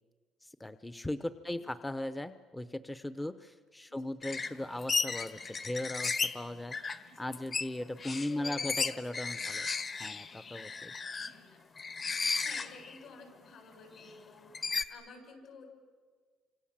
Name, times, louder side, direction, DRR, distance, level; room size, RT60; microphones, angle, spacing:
voice 1, 0.4-6.7 7.2-9.7 10.0-10.9, left 1 dB, 10° left, 11 dB, 0.8 m, -38 dB
sound 1, 4.2-6.4 6.7-7.0 7.3-11.3 11.8-13.0 13.4-13.5 14.5-14.8, left 4 dB, 35° left, 1.4 m, -34 dB
voice 2, 7.0-7.5 8.2-9.5 11.2-11.6 12.1-15.6, left 4 dB, 65° left, 4 dB, 7.7 m, -53 dB
30.0 x 26.5 x 7.5 m, 1.5 s
cardioid pair, 125°, 0 cm